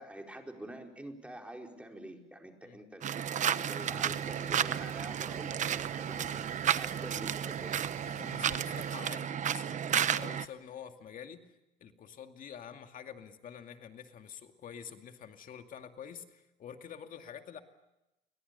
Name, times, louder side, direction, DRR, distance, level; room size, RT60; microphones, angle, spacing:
voice 1, 0.0-7.7, right 1 dB, 5° right, 2 dB, 4.7 m, -47 dB
sound 1, 3.0-10.5, right 9 dB, 45° right, 1.0 m, -32 dB
sound 2, 3.8-9.0, right 14 dB, 75° right, 1.1 m, -49 dB
voice 2, 8.1-11.4 11.8-17.6, left 8 dB, 55° left, 6 dB, 2.3 m, -47 dB
29.5 x 23.5 x 6.9 m, 0.94 s
cardioid pair, 110°, 17 cm